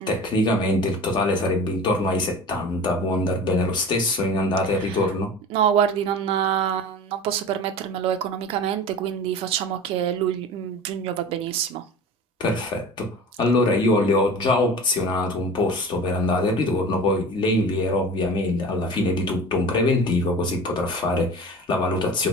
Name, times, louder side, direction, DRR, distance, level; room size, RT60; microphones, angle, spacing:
voice 1, 0.0-5.3 12.4-13.1 13.4-22.3, left 2 dB, 50° left, 1.0 m, -23 dB
voice 2, 5.5-11.8, right 9 dB, 70° right, 0.5 m, -26 dB
2.8 x 2.1 x 4.1 m
cardioid pair, 125°, 10 cm